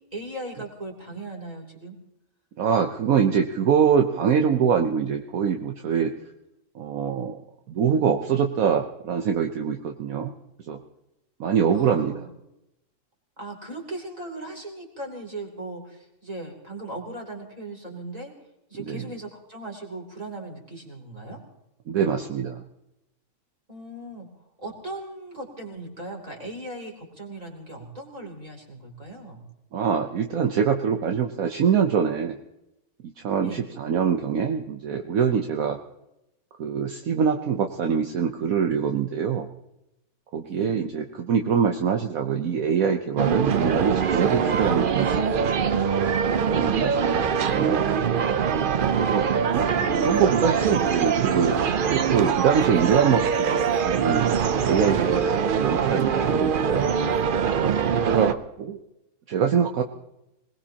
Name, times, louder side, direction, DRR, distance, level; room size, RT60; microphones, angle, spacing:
voice 1, 0.1-2.0 11.7-12.3 13.4-18.3 18.7-21.4 23.7-24.3 24.6-29.4 33.4-33.7 40.4-40.7 46.5-47.0, right 2 dB, 25° right, 0 dB, 3.2 m, -38 dB
voice 2, 2.6-6.1 6.7-7.4 7.7-10.3 10.7-10.8 11.4-12.3 18.9-19.0 21.9-22.6 29.7-32.4 33.0-35.8 36.6-39.5 40.3-45.4 46.4-47.9 49.0-49.3 49.5-51.6 51.9-56.9 58.0-58.8 59.3-59.8, right 7 dB, 70° right, 4 dB, 1.2 m, -24 dB
sound 1, 43.2-58.3, right 7 dB, 50° right, 0.6 m, -23 dB
26.0 x 19.5 x 2.9 m, 0.88 s
omnidirectional pair, 1.6 m